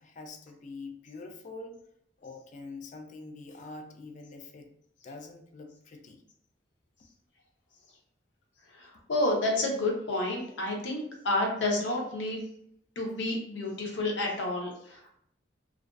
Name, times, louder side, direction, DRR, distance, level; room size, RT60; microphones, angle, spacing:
voice 1, 0.0-1.8 2.2-4.7 5.0-6.2, left 3 dB, 45° left, 5 dB, 0.3 m, -45 dB
voice 2, 8.7-12.4 13.0-15.1, left 2 dB, 80° left, 0 dB, 0.6 m, -30 dB
2.4 x 2.2 x 2.3 m, 0.70 s
head